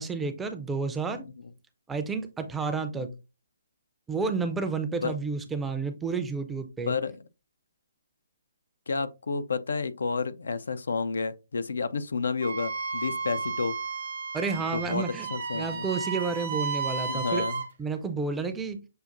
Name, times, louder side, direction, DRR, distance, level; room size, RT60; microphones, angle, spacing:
voice 1, 0.0-1.3 1.9-3.1 4.1-6.9 14.3-15.3 15.5-17.5 17.8-18.9, right 4 dB, 10° right, 0.5 m, -31 dB
voice 2, 6.9-7.2 8.9-13.8 14.7-15.0 15.3-15.9 17.1-17.6, left 4 dB, 70° left, 0.4 m, -30 dB
Wind instrument woodwind instrument, 12.4-17.7, right 4 dB, 50° right, 0.8 m, -33 dB
6.5 x 2.4 x 2.5 m
figure-of-eight pair, 135°, 0 cm